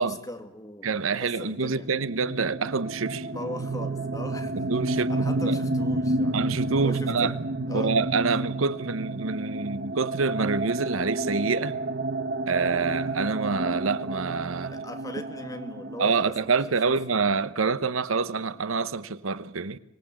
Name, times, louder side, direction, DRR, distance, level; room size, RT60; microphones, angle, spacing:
voice 1, 0.0-1.9 3.2-6.5 6.8-7.3 7.7-8.0 14.7-16.6 16.8-17.0, left 1 dB, 15° left, 2.0 m, -39 dB
voice 2, 0.8-3.3 4.5-5.6 6.3-7.3 7.7-11.7 12.5-14.8 16.0-19.8, right 4 dB, 85° right, 0.9 m, -27 dB
sound 1, 1.8-17.4, right 2 dB, 55° right, 1.1 m, -30 dB
25.0 x 18.5 x 8.7 m
head